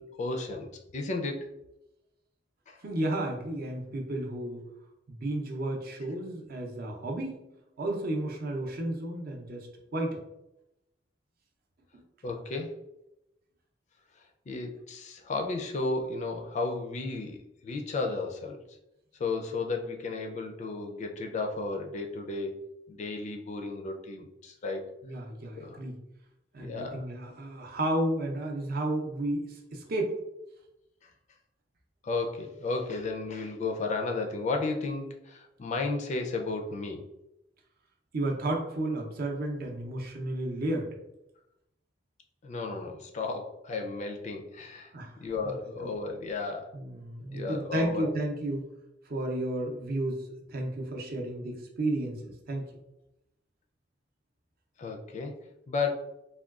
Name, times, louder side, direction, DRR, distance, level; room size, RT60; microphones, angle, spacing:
voice 1, 0.0-1.4 2.7-2.8 12.2-12.7 14.5-18.6 19.2-22.5 22.9-24.9 25.6-25.8 26.6-27.1 32.0-37.1 42.4-44.9 45.2-46.7 47.3-48.1 54.8-55.4 55.7-55.9, left 3 dB, 40° left, 3 dB, 0.4 m, -33 dB
voice 2, 2.8-4.6 5.1-7.3 7.8-10.2 25.0-26.0 26.5-30.2 38.1-40.9 44.9-45.2 45.4-45.5 45.8-45.9 46.7-48.6 49.1-52.7, right 1 dB, 55° right, 1 dB, 0.5 m, -32 dB
3.6 x 2.2 x 2.3 m, 0.88 s
head